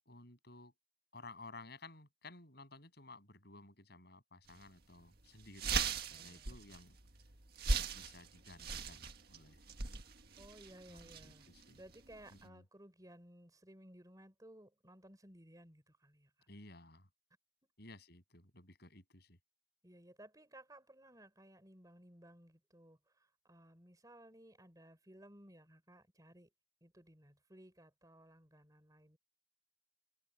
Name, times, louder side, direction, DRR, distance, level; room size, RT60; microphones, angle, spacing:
voice 1, 0.1-0.7 1.1-7.0 7.7-9.6 10.9-11.8 12.3-12.6 16.5-17.1 17.8-19.4, left 2 dB, 55° left, 8.0 m, -56 dB
sound 1, 4.5-4.6 5.0-5.1 5.4-12.4, right 4 dB, 55° right, 1.8 m, -40 dB
voice 2, 6.1-6.5 10.4-11.5 11.8-16.5 17.6-17.7 19.8-26.5 26.8-29.2, right 1 dB, 20° right, 4.5 m, -59 dB
head